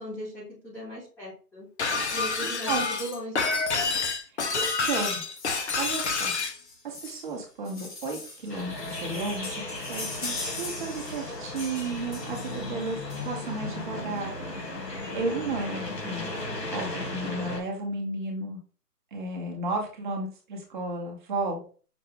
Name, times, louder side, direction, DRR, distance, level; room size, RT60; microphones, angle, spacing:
voice 1, 0.0-1.7 2.1-3.6 12.4-12.9, equal, 5° left, -10 dB, 0.9 m, -38 dB
Shatter, 1.8-6.6, left 4 dB, 45° left, 0.7 m, -28 dB
voice 2, 4.3-5.2 5.7-6.3 6.8-9.6 9.9-13.0 13.2-16.4 16.7-18.6 19.1-21.7, right 3 dB, 30° right, 0 dB, 1.0 m, -33 dB
sound 1, 5.4-13.7 14.8-14.9 15.2-15.3 15.5-15.7 16.0-16.6 17.1-17.2, left 2 dB, 30° left, 1.3 m, -41 dB
sound 2, 8.5-17.6, left 2 dB, 80° left, 2.6 m, -36 dB
5.9 x 2.5 x 3.7 m, 0.39 s
figure-of-eight pair, 145°, 49 cm